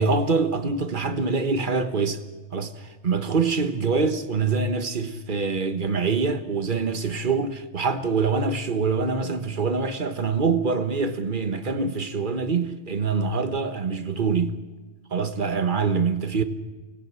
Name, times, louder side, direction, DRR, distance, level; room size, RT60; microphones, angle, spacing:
voice 1, 0.0-2.2 2.5-14.6 15.1-16.4, right 4 dB, 45° right, 1.5 m, -25 dB
24.0 x 20.0 x 7.6 m
omnidirectional pair, 1.2 m